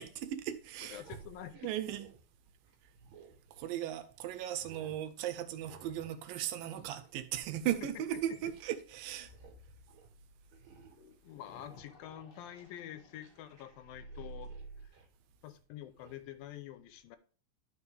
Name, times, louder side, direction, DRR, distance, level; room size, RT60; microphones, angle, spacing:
voice 1, 0.0-1.0 1.6-2.1 3.6-9.3, right 11 dB, 80° right, 2.3 m, -37 dB
voice 2, 0.8-1.7 7.8-8.4 11.2-14.5 14.8-14.9 15.4-17.2, left 12 dB, 90° left, 2.4 m, -47 dB
sound 1, 0.9-4.0 4.3-5.0 5.6-6.2 6.5-8.9 9.2-9.6 9.9-10.1 10.5-11.1 11.5-13.6 13.9-15.2 16.0-16.2, right 6 dB, 55° right, 2.7 m, -59 dB
sound 2, 9.2-14.9, right 2 dB, 55° left, 1.7 m, -53 dB
11.5 x 5.2 x 3.3 m
omnidirectional pair, 4.1 m